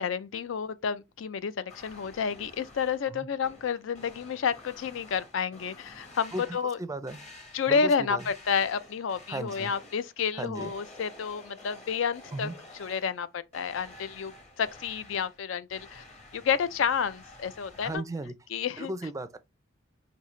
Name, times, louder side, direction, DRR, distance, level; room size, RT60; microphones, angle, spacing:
voice 1, 0.0-6.8 7.5-12.5 12.8-14.3 14.6-16.0 16.3-18.0 18.5-18.9, left 6 dB, 70° left, 0.4 m, -30 dB
sound 1, 1.7-3.1 3.4-6.8 7.1-7.8 8.2-10.2 10.6-13.3 13.5-18.0, left 2 dB, 35° left, 1.1 m, -50 dB
voice 2, 6.3-7.2 7.7-8.2 9.3-9.7 10.4-10.7 12.3-12.5 17.8-18.3 18.8-19.4, right 2 dB, 15° right, 0.4 m, -36 dB
5.2 x 2.8 x 3.1 m
head